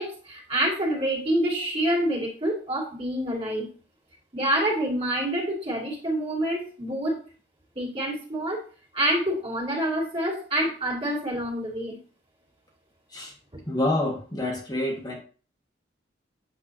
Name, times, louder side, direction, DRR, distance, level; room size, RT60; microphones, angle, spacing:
voice 1, 0.0-3.7 4.3-7.2 7.7-8.6 8.9-12.0, right 1 dB, 30° right, -3 dB, 2.6 m, -27 dB
voice 2, 13.7-15.2, left 1 dB, 20° left, -2 dB, 1.3 m, -27 dB
8.6 x 6.8 x 2.7 m, 0.39 s
head